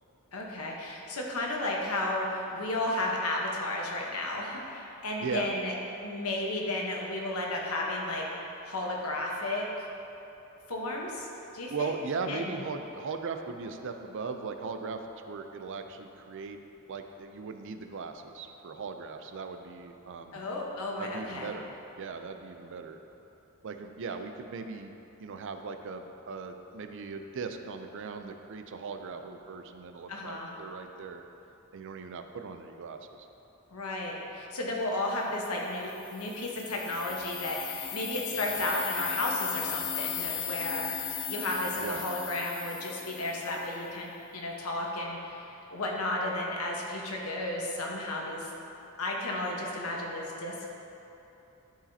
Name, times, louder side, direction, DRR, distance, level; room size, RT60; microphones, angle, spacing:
voice 1, 0.3-5.7 6.0-8.3 8.6-9.9 10.7-11.3 11.5-11.9 12.3-12.6 20.3-21.5 30.1-30.5 33.7-40.9 41.3-48.5 49.0-50.7, left 1 dB, 85° left, -1 dB, 1.1 m, -33 dB
voice 2, 5.2-5.5 11.6-15.0 15.3-16.6 16.9-20.4 21.0-23.0 23.6-24.9 25.2-31.2 31.7-33.3 41.8-42.0, right 4 dB, 60° right, 6 dB, 0.5 m, -38 dB
sound 1, 35.8-43.8, left 9 dB, 60° left, 0.5 m, -37 dB
12.0 x 4.9 x 2.8 m, 2.9 s
head